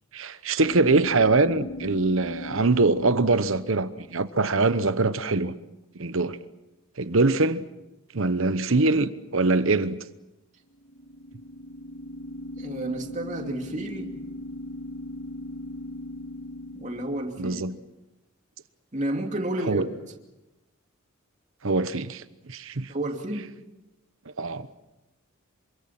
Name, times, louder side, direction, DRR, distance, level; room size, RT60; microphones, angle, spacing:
voice 1, 0.1-5.6 5.9-6.4 7.0-7.6 8.1-10.0 17.4-17.8 19.7-19.8 21.6-22.9 24.3-24.8, right 3 dB, 70° right, 1.0 m, -23 dB
sound 1, 0.6-4.6 10.7-17.7, left 1 dB, 75° left, 2.6 m, -39 dB
voice 2, 12.6-14.2 16.7-17.7 18.9-19.8 22.9-23.6, right 1 dB, 35° right, 2.7 m, -31 dB
26.5 x 25.0 x 6.0 m
head